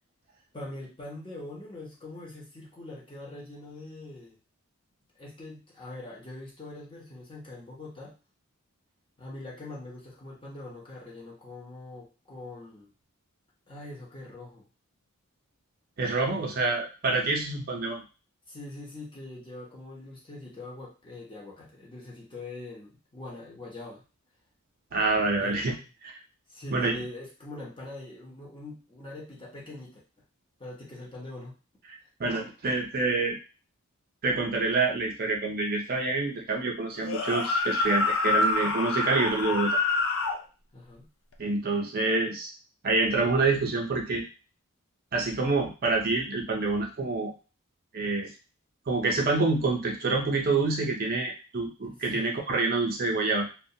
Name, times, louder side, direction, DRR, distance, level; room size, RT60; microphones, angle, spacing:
voice 1, 0.5-4.4 5.2-8.2 9.2-12.9 13.7-14.7 16.3-16.6 18.5-24.0 25.3-25.8 26.5-30.0 30.6-31.6 40.7-41.1 51.9-52.3, left 2 dB, 25° left, -4 dB, 0.7 m, -43 dB
voice 2, 16.0-18.0 24.9-25.8 26.0-26.2 26.7-26.9 32.2-33.3 34.2-39.8 41.4-42.5 42.8-44.2 45.1-47.3 47.9-48.3 48.9-53.5, right 3 dB, 45° right, 0 dB, 0.5 m, -27 dB
sound 1, 37.0-40.4, left 3 dB, 65° left, 0.4 m, -26 dB
2.2 x 2.1 x 2.7 m, 0.33 s
head